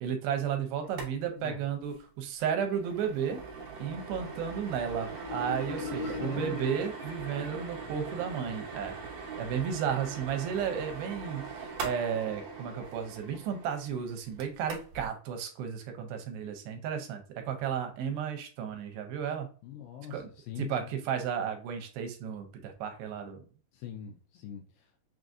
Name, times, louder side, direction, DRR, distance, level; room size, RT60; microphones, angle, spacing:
voice 1, 0.0-3.4 3.8-9.0 9.4-19.5 20.1-20.3 20.6-23.4, right 8 dB, 85° right, 2.5 m, -33 dB
sound 1, 0.8-1.1 1.4-1.5 1.8-2.0 2.4-15.1, right 4 dB, 65° right, 1.7 m, -42 dB
Marimba xylophone, 5.2-7.9, left 3 dB, 55° left, 0.6 m, -39 dB
voice 2, 6.0-6.6 19.6-20.9 23.7-25.1, left 9 dB, 80° left, 2.1 m, -43 dB
6.0 x 2.6 x 2.3 m
omnidirectional pair, 4.4 m